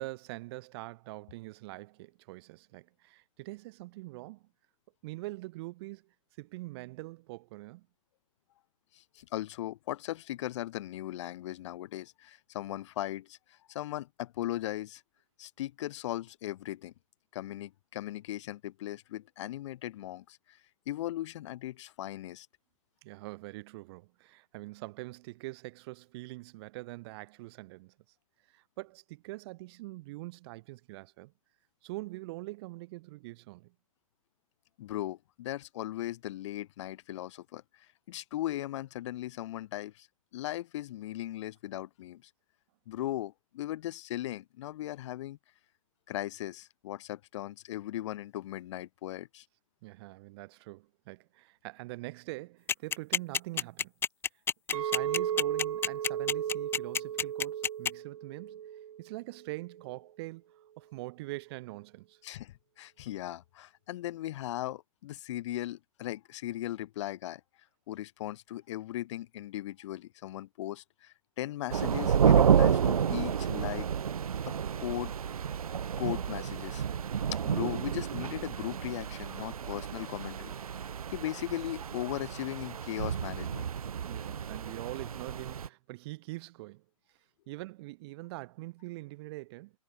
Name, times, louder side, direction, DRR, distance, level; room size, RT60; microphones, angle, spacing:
voice 1, 0.0-4.5 5.0-7.9 23.0-27.9 28.5-31.3 31.8-33.7 49.8-53.9 54.7-58.6 59.0-60.4 60.8-62.2 79.6-79.7 84.0-86.8 87.5-89.7, right 21 dB, 45° right, 4.8 m, -43 dB
voice 2, 8.9-15.0 15.4-16.9 17.3-20.6 20.9-22.5 34.8-40.1 40.3-42.2 42.9-45.4 46.1-49.5 62.2-67.4 67.9-73.9 74.5-75.4 76.0-76.9 77.4-80.5 81.1-83.7, left 14 dB, 55° left, 2.2 m, -38 dB
sound 1, 52.7-57.9, left 7 dB, 10° left, 0.8 m, -28 dB
Chink clink, 54.7-59.1 59.4-59.8, right 10 dB, 75° right, 1.0 m, -35 dB
sound 2, 71.7-85.7, right 8 dB, 90° right, 0.8 m, -30 dB
hypercardioid pair, 130°, 18 cm